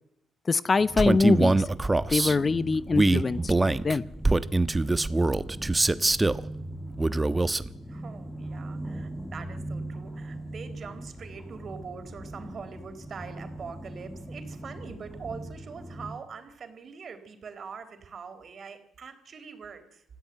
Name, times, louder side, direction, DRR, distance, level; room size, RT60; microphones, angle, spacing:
voice 1, 0.5-1.7 2.1-4.1, left 4 dB, 35° left, 16 dB, 0.8 m, -24 dB
sound 1, 0.8-16.2, right 1 dB, 5° left, 2.1 m, -40 dB
Male speech man speaking, 1.0-2.3 2.9-6.4 7.0-7.7, right 2 dB, 15° right, 1.1 m, -23 dB
voice 2, 7.9-20.0, right 5 dB, 50° right, 9 dB, 4.3 m, -43 dB
28.0 x 15.0 x 9.1 m, 0.83 s
cardioid pair, 90°, 0 cm